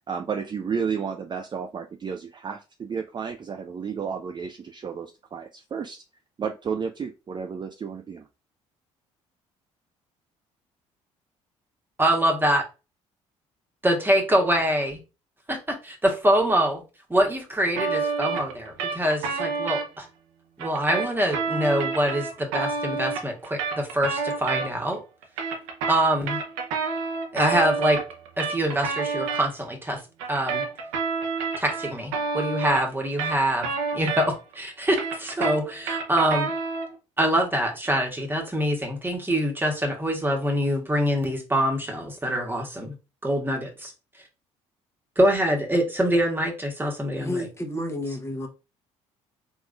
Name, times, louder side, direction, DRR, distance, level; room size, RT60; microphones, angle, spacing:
voice 1, 0.1-6.0 6.4-8.3, right 6 dB, 30° right, 0.4 m, -32 dB
voice 2, 12.0-12.6 13.8-15.0 15.5-16.8 17.1-20.1 20.6-25.0 25.9-26.4 27.3-28.0 28.4-30.0 30.3-30.6 31.6-36.5 37.2-42.9 43.2-43.9 45.2-47.5, equal, 15° right, 1.3 m, -24 dB
sound 1, 17.8-19.9 20.6-24.9 25.2-29.5 30.2-34.5 34.8-37.0, right 5 dB, 80° right, 0.7 m, -29 dB
voice 3, 47.1-48.5, left 1 dB, 15° left, 1.0 m, -31 dB
3.6 x 3.0 x 2.4 m
hypercardioid pair, 55°, 15 cm